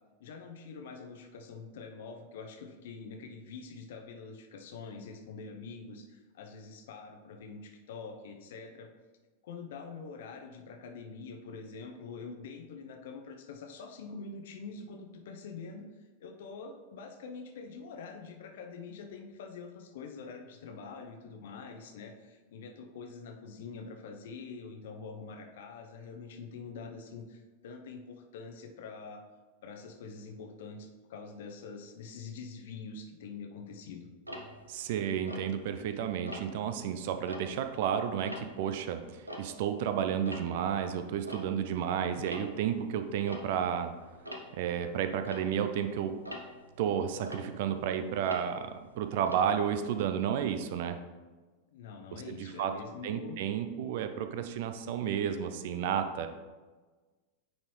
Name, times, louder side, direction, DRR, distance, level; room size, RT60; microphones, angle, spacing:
voice 1, 0.2-8.9 9.4-15.9 16.2-29.2 29.6-34.1 51.7-53.4, left 4 dB, 55° left, 4 dB, 0.8 m, -45 dB
Tick-tock, 34.2-35.9 36.3-36.7 37.1-39.9 40.1-50.2, equal, 85° right, 0.8 m, -46 dB
voice 2, 34.7-43.9 44.6-46.2 46.8-51.0 52.3-52.7 53.0-56.3, right 8 dB, 50° right, 8 dB, 0.5 m, -32 dB
9.4 x 4.2 x 3.2 m, 1.3 s
figure-of-eight pair, 90°, 0 cm